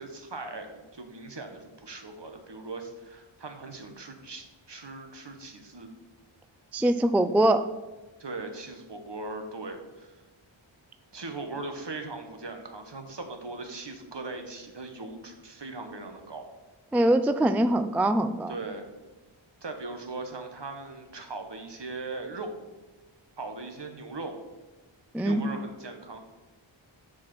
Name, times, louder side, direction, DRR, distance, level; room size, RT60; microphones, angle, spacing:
voice 1, 0.0-5.9 8.2-10.2 11.1-16.4 18.5-18.9 19.6-22.5 23.4-24.4 25.2-26.2, right 3 dB, 60° right, 6 dB, 1.2 m, -39 dB
voice 2, 6.7-7.7 16.9-18.5 25.1-25.4, right 1 dB, 5° right, 9 dB, 0.3 m, -23 dB
7.1 x 5.0 x 6.0 m, 1.2 s
wide cardioid pair, 45°, 49 cm